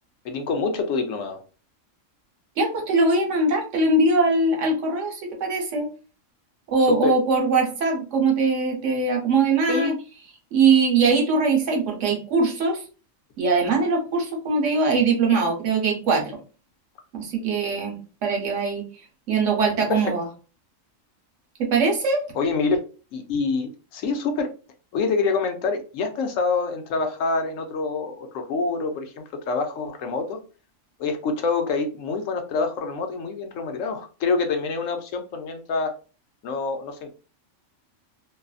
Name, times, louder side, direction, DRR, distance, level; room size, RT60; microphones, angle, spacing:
voice 1, 0.2-1.4 6.9-7.1 9.7-9.9 19.9-20.1 22.3-22.8 23.1-24.5 24.9-29.1 29.5-30.4 31.0-35.9 36.4-37.1, left 4 dB, 80° left, 6 dB, 1.0 m, -26 dB
voice 2, 2.6-5.9 6.7-9.9 10.5-12.8 13.4-16.4 17.1-18.8 19.3-20.3 21.7-22.2, right 3 dB, 75° right, 2 dB, 1.1 m, -21 dB
2.6 x 2.5 x 2.3 m, 0.35 s
omnidirectional pair, 1.3 m